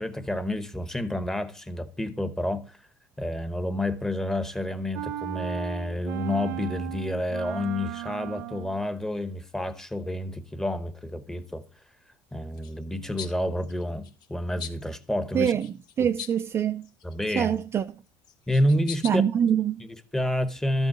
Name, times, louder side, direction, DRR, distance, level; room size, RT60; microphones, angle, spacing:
voice 1, 0.0-2.8 3.2-11.6 12.3-15.5 16.0-16.1 17.0-17.5 18.5-19.2 19.9-20.9, left 1 dB, 5° left, 0.9 m, -29 dB
sound 1, 4.9-8.8, right 14 dB, 90° right, 0.7 m, -36 dB
sound 2, 12.5-12.7 13.2-13.3 13.6-14.3 14.6-14.9 15.6-16.5 16.8-17.6 18.2-19.1, left 8 dB, 50° left, 1.4 m, -40 dB
voice 2, 15.3-15.7 16.0-16.8 17.3-17.8 19.0-19.8, right 8 dB, 30° right, 0.4 m, -24 dB
13.0 x 5.3 x 6.0 m
cardioid pair, 145°, 9 cm